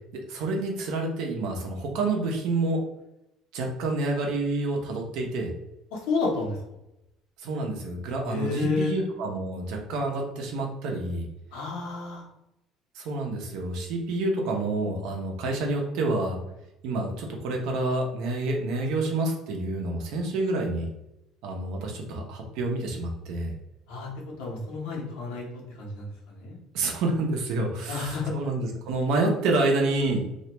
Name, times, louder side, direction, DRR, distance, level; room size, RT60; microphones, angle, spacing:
voice 1, 0.1-2.8 3.5-5.5 7.4-11.2 12.9-16.4 16.8-20.9 21.4-23.5 26.7-30.2, right 2 dB, 75° right, 1 dB, 0.6 m, -28 dB
voice 2, 5.9-6.6 8.3-8.9 11.5-12.2 23.9-24.1 24.4-25.5 25.8-26.1 26.4-26.6 27.9-28.3, left 3 dB, 85° left, -2 dB, 0.8 m, -30 dB
2.4 x 2.1 x 2.9 m, 0.89 s
supercardioid pair, 100°, 0 cm